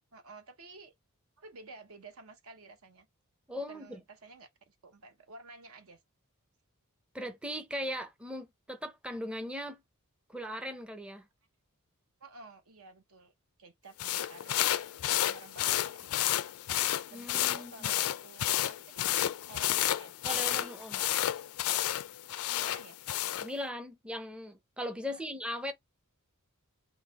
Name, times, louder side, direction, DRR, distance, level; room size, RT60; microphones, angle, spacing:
voice 1, 0.1-0.9 1.4-3.1 3.5-6.0 12.2-13.3 13.6-14.8 15.0-16.4 17.1-19.0 19.5-20.8 22.4-23.0 25.0-25.2, right 3 dB, 70° right, 0.9 m, -52 dB
voice 2, 3.5-4.0 7.1-9.8 10.3-11.3 17.1-17.9 20.2-21.0 23.4-25.7, equal, 5° right, 0.5 m, -39 dB
sound 1, 14.0-23.5, left 13 dB, 70° left, 0.4 m, -31 dB
3.9 x 2.2 x 4.0 m
head